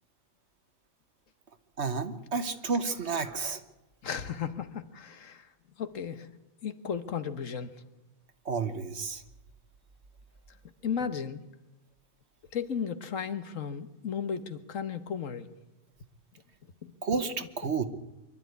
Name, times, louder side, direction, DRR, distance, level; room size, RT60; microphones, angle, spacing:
voice 1, 1.8-3.6 8.4-9.2 17.0-17.9, right 4 dB, 50° right, 10 dB, 1.5 m, -31 dB
voice 2, 4.0-5.5 5.8-6.3 6.6-7.7 10.8-11.4 12.5-15.5 16.8-16.9, left 7 dB, 65° left, 11 dB, 1.5 m, -34 dB
24.5 x 12.0 x 9.4 m, 1.0 s
omnidirectional pair, 1.5 m